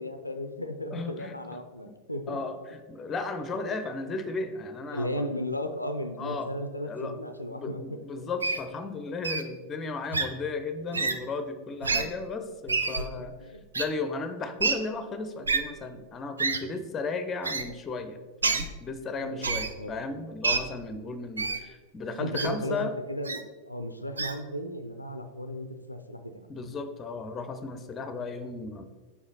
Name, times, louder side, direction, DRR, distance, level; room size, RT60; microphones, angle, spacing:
voice 1, 0.0-2.4 4.9-8.0 13.0-13.6 19.2-19.5 19.7-19.9 22.2-26.5, equal, 85° left, 8 dB, 0.4 m, -35 dB
voice 2, 0.9-1.3 2.3-5.2 6.2-6.5 6.8-7.2 7.5-13.3 13.7-22.9 26.5-28.9, left 3 dB, 20° left, 9 dB, 0.6 m, -35 dB
Wild animals, 8.4-8.6 9.2-9.4 10.1-10.3 10.9-11.2 11.8-12.0 12.7-13.0 13.7-13.8 14.6-14.7 15.5-15.6 16.4-16.6 17.4-17.6 18.4-18.7 19.4-19.7 20.4-20.6 21.4-21.6 22.3-22.5 23.2-23.4 24.2-24.3, right 4 dB, 75° right, 0.4 m, -27 dB
5.3 x 4.9 x 4.1 m, 1.3 s
figure-of-eight pair, 90°, 0 cm